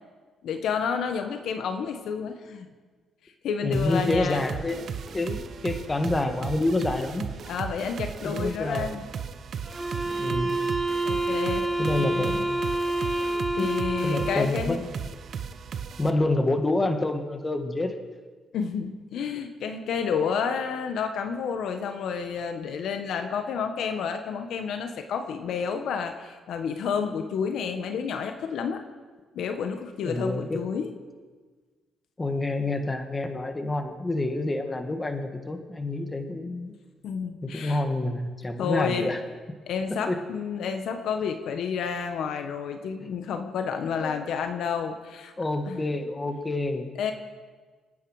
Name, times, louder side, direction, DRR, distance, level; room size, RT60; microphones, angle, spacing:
voice 1, 0.4-2.7 3.4-4.4 7.5-9.0 11.0-11.7 12.0-12.3 13.2-14.8 18.5-28.8 29.3-30.9 37.0-37.8 38.6-39.2 39.7-45.3 45.7-45.8 47.0-47.1, left 6 dB, 75° left, 6 dB, 1.4 m, -30 dB
voice 2, 3.6-4.8 5.1-7.3 8.2-9.0 10.1-10.6 11.8-12.5 13.6-13.7 14.0-14.8 16.0-18.0 30.0-30.6 32.2-36.7 37.4-39.2 40.1-40.2 43.0-43.1 44.0-44.2 45.4-46.9, left 2 dB, 20° left, 5 dB, 2.0 m, -28 dB
sound 1, 3.7-16.1, right 7 dB, 60° right, 1.1 m, -36 dB
sound 2, 9.6-14.6, right 2 dB, 15° right, 1.6 m, -28 dB
29.0 x 9.7 x 5.1 m, 1.4 s
cardioid pair, 90°, 0 cm